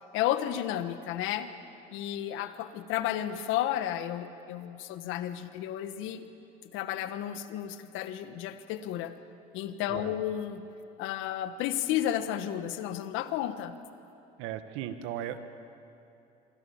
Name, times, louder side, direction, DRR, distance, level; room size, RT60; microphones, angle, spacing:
voice 1, 0.1-1.5 1.9-6.2 6.7-9.1 9.5-10.6 11.0-13.7, left 11 dB, 70° left, 10 dB, 1.6 m, -32 dB
voice 2, 14.4-15.4, right 11 dB, 75° right, 9 dB, 1.7 m, -36 dB
27.0 x 24.0 x 7.3 m, 2.7 s
hypercardioid pair, 70°, 21 cm